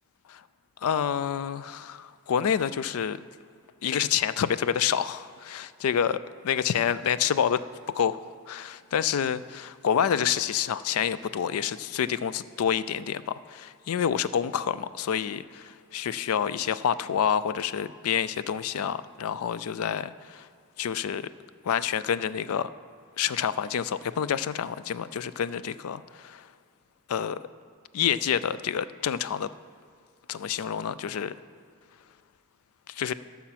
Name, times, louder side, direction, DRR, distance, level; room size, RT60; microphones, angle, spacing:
voice 1, 0.8-3.2 3.8-6.2 6.4-7.6 7.9-8.2 8.5-20.5 20.8-21.3 21.6-22.7 23.2-26.5 27.1-27.4 27.9-29.5 30.3-31.3 32.9-33.1, left 8 dB, 80° left, 15 dB, 0.4 m, -28 dB
13.0 x 5.8 x 5.8 m, 2.1 s
head